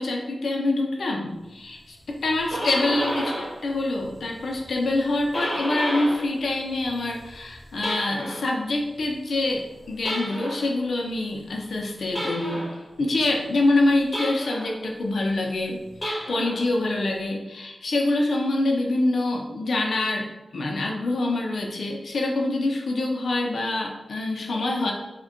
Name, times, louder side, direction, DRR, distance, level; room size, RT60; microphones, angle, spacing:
voice 1, 0.0-12.7 13.0-24.9, left 2 dB, 80° left, 0 dB, 0.4 m, -25 dB
sound 1, 2.2-3.6 3.9-6.3 6.6-8.5 10.0-10.7 12.1-12.8 14.1-14.8 15.9-16.7, equal, 25° left, 1.1 m, -31 dB
3.4 x 2.1 x 2.5 m, 1.0 s
wide cardioid pair, 85°, 0 cm